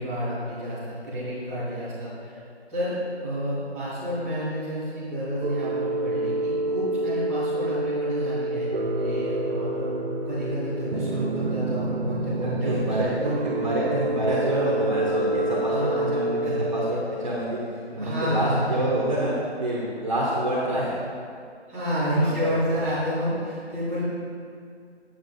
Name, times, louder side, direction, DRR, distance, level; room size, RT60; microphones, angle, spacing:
voice 1, 0.0-2.4 2.7-13.3 15.7-16.1 16.4-16.6 18.0-18.8 21.7-24.0, equal, ahead, -13 dB, 2.1 m, -29 dB
sound 1, 5.4-16.9, right 2 dB, 60° right, 0.6 m, -28 dB
voice 2, 12.3-13.1 13.4-17.6 17.9-19.3 19.6-20.9 22.2-22.5, right 1 dB, 30° right, -5 dB, 1.2 m, -27 dB
sound 2, 15.1-17.6, left 3 dB, 20° left, 0.9 m, -45 dB
8.6 x 7.5 x 4.1 m, 2.3 s
figure-of-eight pair, 170°, 34 cm